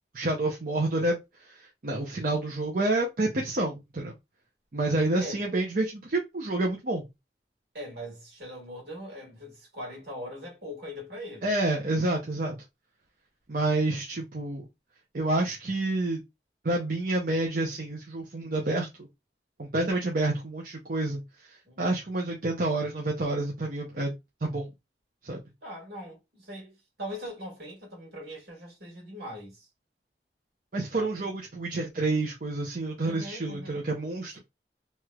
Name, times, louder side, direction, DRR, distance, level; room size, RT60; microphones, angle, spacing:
voice 1, 0.1-1.2 1.4-4.1 4.7-7.0 11.4-12.6 13.5-14.7 15.1-16.2 16.6-18.9 19.6-21.2 21.5-24.1 24.4-24.7 25.2-25.4 30.7-34.4, right 2 dB, 50° right, 0.6 m, -28 dB
voice 2, 7.7-11.5 21.7-22.0 25.6-29.7 30.9-31.3 33.0-33.9, equal, 70° right, 1.8 m, -41 dB
3.1 x 3.0 x 2.3 m
head